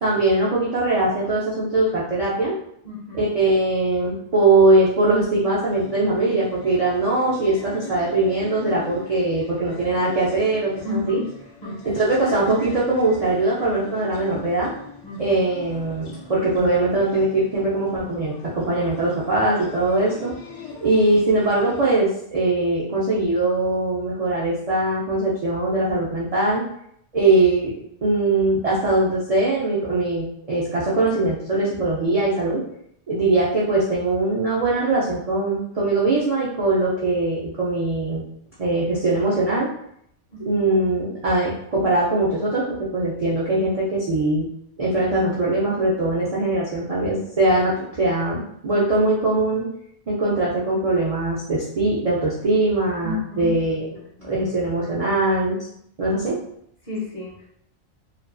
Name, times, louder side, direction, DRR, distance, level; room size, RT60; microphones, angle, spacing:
voice 1, 0.0-2.6 3.1-11.2 11.8-14.7 15.2-20.3 20.8-26.6 27.1-27.7 28.0-32.6 33.1-38.2 38.6-39.7 40.5-42.7 42.9-44.5 44.8-49.6 50.1-53.9 54.2-55.7 56.0-56.4, right 2 dB, 70° right, -6 dB, 0.3 m, -21 dB
voice 2, 2.8-3.2 10.8-11.3 11.6-11.8 15.0-15.4 40.3-40.6 53.0-53.5 54.2-54.3 56.8-57.5, left 3 dB, 45° left, -5 dB, 0.6 m, -32 dB
sound 1, 5.7-22.0, left 3 dB, 80° left, 0.9 m, -41 dB
2.4 x 2.2 x 2.4 m, 0.71 s
omnidirectional pair, 1.2 m